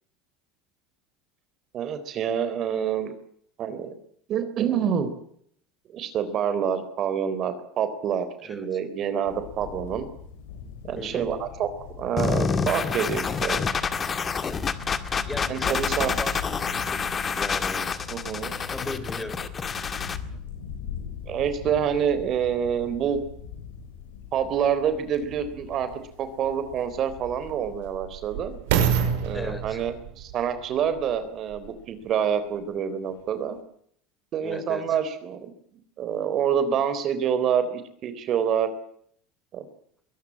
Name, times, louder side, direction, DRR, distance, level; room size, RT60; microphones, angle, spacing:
voice 1, 1.7-3.1 3.6-4.0 4.3-5.1 5.9-10.1 10.8-11.7 12.0-13.6 15.5-16.1 18.1-18.5 21.3-23.2 24.3-25.9 26.2-28.6 29.2-33.6 34.3-35.5 36.0-38.7 39.5-39.6, right 8 dB, 45° right, 11 dB, 3.8 m, -27 dB
sound 1, 9.3-27.8, left 7 dB, 90° left, 6.9 m, -40 dB
voice 2, 11.0-11.4 15.3-17.9 18.4-19.4 29.3-29.8 34.4-35.0, left 1 dB, 10° left, 10 dB, 3.5 m, -37 dB
sound 2, 12.2-20.2, left 5 dB, 25° left, 2.0 m, -28 dB
sound 3, 25.7-25.8 26.5-31.8 32.4-32.5, right 8 dB, 80° right, 5.7 m, -29 dB
22.5 x 17.5 x 8.8 m, 0.66 s
supercardioid pair, 115°, 0 cm